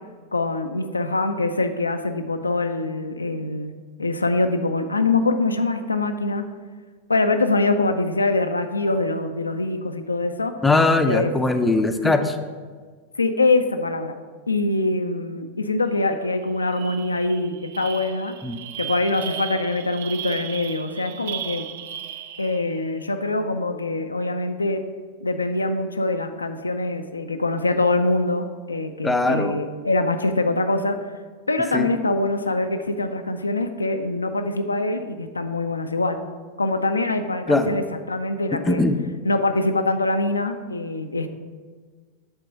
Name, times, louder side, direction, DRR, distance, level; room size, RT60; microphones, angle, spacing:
voice 1, 0.3-3.7 4.0-6.5 7.1-10.5 11.1-11.3 12.0-12.2 13.2-14.2 14.5-18.3 18.8-21.7 22.4-24.8 25.2-31.0 31.5-36.2 36.6-38.8 39.2-41.3, left 2 dB, 80° left, 7 dB, 0.4 m, -24 dB
voice 2, 10.6-12.3 18.4-18.6 29.0-29.5 31.7-31.9 37.5-37.8 38.5-39.0, left 2 dB, 10° left, 6 dB, 0.5 m, -20 dB
sound 1, 16.0-16.1 16.4-22.8, right 10 dB, 55° right, 0.3 m, -36 dB
7.9 x 3.8 x 5.4 m, 1.5 s
figure-of-eight pair, 90°, 0 cm